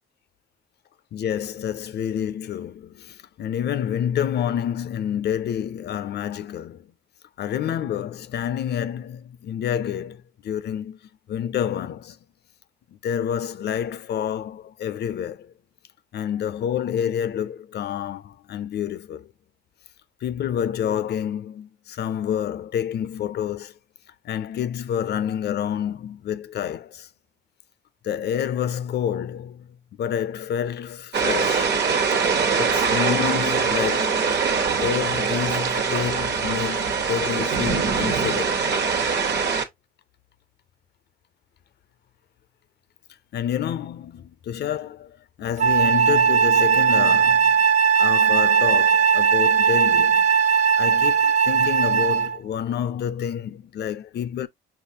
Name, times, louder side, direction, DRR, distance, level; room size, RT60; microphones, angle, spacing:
voice 1, 1.1-6.9 7.4-11.0 11.3-12.2 12.9-15.5 16.1-19.3 20.2-23.7 24.2-27.1 28.0-29.7 30.0-31.7 32.6-34.4 34.8-38.7 43.3-47.7 48.0-50.3 50.8-54.5, left 9 dB, 55° left, 0.5 m, -28 dB
sound 1, 31.1-39.6, right 5 dB, 60° right, 1.0 m, -23 dB
Wind instrument woodwind instrument, 45.6-52.4, right 6 dB, 40° right, 0.4 m, -18 dB
5.8 x 2.4 x 2.7 m
cardioid pair, 90°, 20 cm